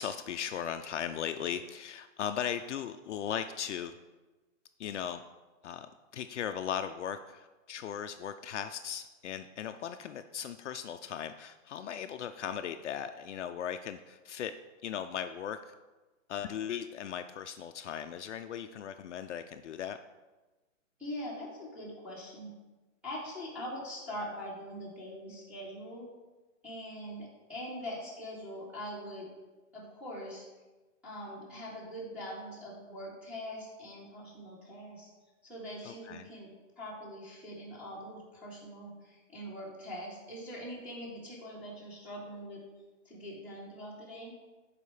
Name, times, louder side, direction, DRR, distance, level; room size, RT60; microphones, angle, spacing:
voice 1, 0.0-3.9 4.8-5.2 5.6-14.5 14.8-15.7 16.3-20.0 35.8-36.3, left 9 dB, 65° left, 8 dB, 0.6 m, -38 dB
voice 2, 21.0-22.5 23.0-26.1 26.6-29.3 29.7-30.5 31.0-35.1 35.4-42.6 43.0-44.3, equal, 5° right, -7 dB, 2.1 m, -43 dB
12.5 x 5.0 x 4.9 m, 1.2 s
hypercardioid pair, 165°, 39 cm